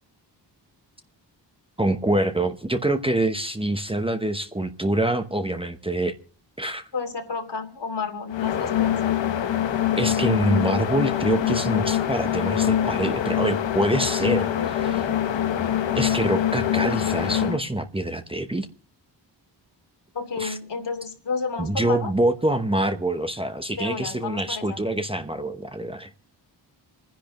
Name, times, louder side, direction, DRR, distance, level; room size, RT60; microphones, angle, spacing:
voice 1, 1.8-6.1 6.6-6.9 10.0-15.0 15.9-18.7 20.4-20.6 21.6-26.1, right 1 dB, 15° right, 0.9 m, -25 dB
voice 2, 6.9-9.1 14.5-15.1 20.1-22.1 23.7-24.8, left 4 dB, 70° left, 2.7 m, -31 dB
sound 1, 8.3-17.6, left 10 dB, 85° left, 1.1 m, -24 dB
27.5 x 10.5 x 3.0 m
wide cardioid pair, 115°, 43 cm